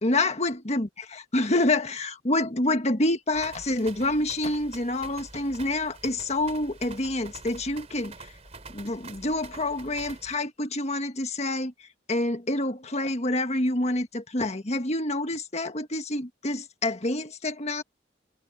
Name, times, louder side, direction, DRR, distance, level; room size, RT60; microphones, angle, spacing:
voice 1, 0.0-0.9 1.2-8.3 8.7-11.7 12.1-17.8, left 2 dB, 35° left, 1.6 m, -27 dB
sound 1, 3.3-10.4, right 3 dB, 35° right, 3.9 m, -46 dB
head